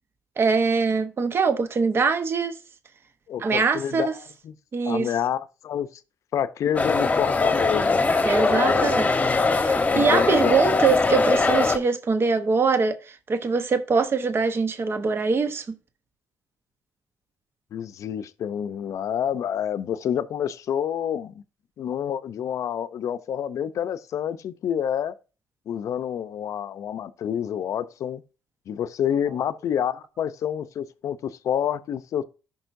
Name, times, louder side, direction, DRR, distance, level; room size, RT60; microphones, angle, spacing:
voice 1, 0.4-2.6 3.4-4.1 4.7-5.1 8.2-9.1 9.6-15.6, right 4 dB, 40° right, 1.0 m, -23 dB
voice 2, 3.3-4.6 4.9-5.9 6.3-8.0 8.6-8.9 9.9-10.5 17.7-21.4 21.8-25.1 25.7-28.2 28.7-32.2, left 9 dB, 60° left, 0.6 m, -28 dB
sound 1, 6.8-11.8, left 3 dB, 25° left, 1.0 m, -21 dB
13.5 x 5.5 x 2.7 m
supercardioid pair, 65°, 6 cm